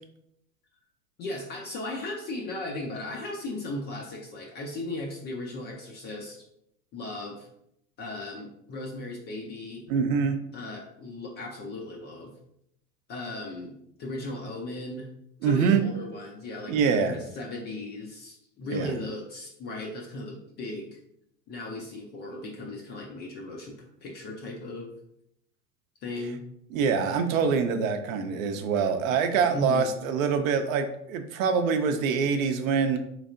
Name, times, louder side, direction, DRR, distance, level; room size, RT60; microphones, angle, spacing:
voice 1, 1.2-6.4 6.9-7.5 8.0-9.8 10.5-12.3 13.1-13.7 14.0-15.1 15.4-21.0 21.5-24.9 26.0-26.4 29.5-29.9, left 2 dB, 20° left, 0 dB, 0.4 m, -36 dB
voice 2, 9.9-10.4 15.4-15.8 16.7-17.2 18.7-18.9 26.7-33.0, right 6 dB, 55° right, 7 dB, 0.6 m, -25 dB
4.1 x 3.2 x 2.5 m, 0.75 s
hypercardioid pair, 95°, 49 cm